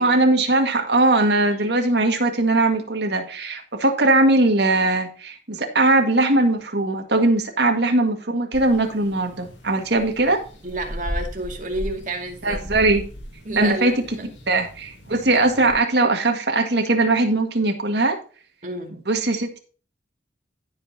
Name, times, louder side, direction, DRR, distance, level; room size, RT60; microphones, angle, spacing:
voice 1, 0.0-10.4 12.4-13.1 13.5-13.9 14.5-18.2 19.1-19.6, right 2 dB, 65° right, 4 dB, 1.9 m, -20 dB
sound 1, 8.5-15.7, equal, 85° left, 2.3 m, -36 dB
voice 2, 10.6-12.6 13.4-14.3 18.6-19.0, right 2 dB, 45° right, 2 dB, 2.2 m, -30 dB
16.0 x 5.5 x 2.8 m, 0.38 s
head